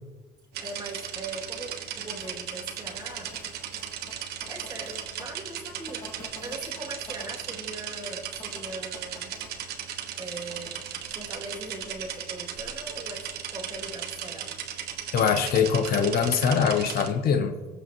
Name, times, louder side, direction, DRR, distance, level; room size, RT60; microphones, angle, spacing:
sound 1, 0.5-17.1, right 9 dB, 70° right, 1.2 m, -37 dB
voice 1, 0.6-3.3 4.5-9.4 10.2-14.5 17.7-17.8, right 2 dB, 25° right, -2 dB, 2.6 m, -40 dB
sound 2, 2.2-2.3 2.8-5.2 5.9-7.4 8.4-9.5 10.5-10.7, left 2 dB, 30° left, 2.9 m, -48 dB
voice 2, 15.1-17.5, left 7 dB, 65° left, 7 dB, 0.9 m, -23 dB
18.5 x 7.0 x 3.1 m, 1.3 s
cardioid pair, 110°, 17 cm